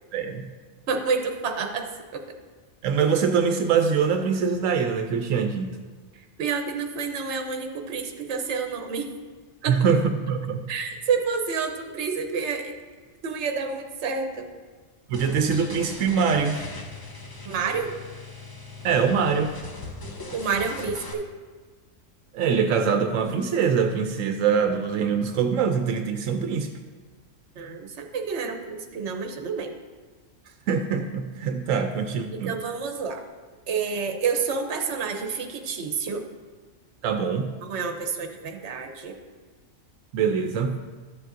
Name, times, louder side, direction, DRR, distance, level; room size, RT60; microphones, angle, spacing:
voice 1, 0.1-0.4 2.8-5.7 9.6-10.6 15.1-16.6 18.8-19.6 22.3-26.7 30.7-32.5 37.0-37.5 40.1-40.8, right 6 dB, 85° right, 6 dB, 1.0 m, -23 dB
voice 2, 0.9-2.2 6.1-9.1 9.6-9.8 10.7-12.7 13.2-14.5 17.5-17.9 20.3-21.3 27.6-29.8 32.4-33.3 33.7-36.3 37.6-39.2, right 5 dB, 60° right, 4 dB, 1.1 m, -29 dB
sound 1, 15.1-21.1, left 2 dB, 25° left, 0.5 m, -40 dB
12.5 x 7.6 x 2.6 m, 1.5 s
omnidirectional pair, 1.3 m